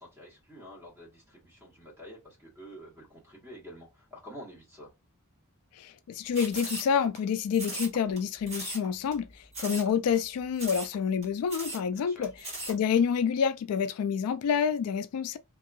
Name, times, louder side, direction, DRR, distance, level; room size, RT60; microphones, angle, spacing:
voice 1, 0.0-4.9 11.9-12.3, equal, 10° right, 1.3 m, -48 dB
voice 2, 5.8-9.3 9.6-12.3 12.7-15.4, left 7 dB, 80° left, 0.3 m, -28 dB
sound 1, 6.3-7.2 7.5-8.2 8.5-8.8 9.1-9.2 9.5-9.9 10.1-10.2 10.5-10.9 11.2-11.3 11.5-11.8 12.2-12.7, right 2 dB, 30° right, 1.4 m, -37 dB
2.7 x 2.3 x 2.5 m
head